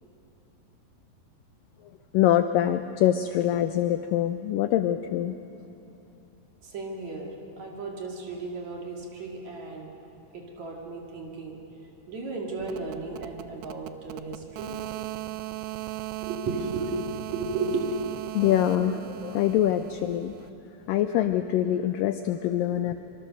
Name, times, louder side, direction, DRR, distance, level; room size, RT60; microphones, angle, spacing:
voice 1, 2.1-5.4 18.3-20.3 20.9-22.9, left 11 dB, 90° left, 9 dB, 1.9 m, -24 dB
voice 2, 6.6-9.9 10.3-11.6 12.1-14.7 16.2-18.0 22.5-22.9, right 3 dB, 50° right, 0 dB, 3.3 m, -34 dB
sound 1, 12.6-20.5, right 16 dB, 90° right, 2.8 m, -38 dB
25.5 x 25.0 x 6.6 m, 2.9 s
omnidirectional pair, 4.7 m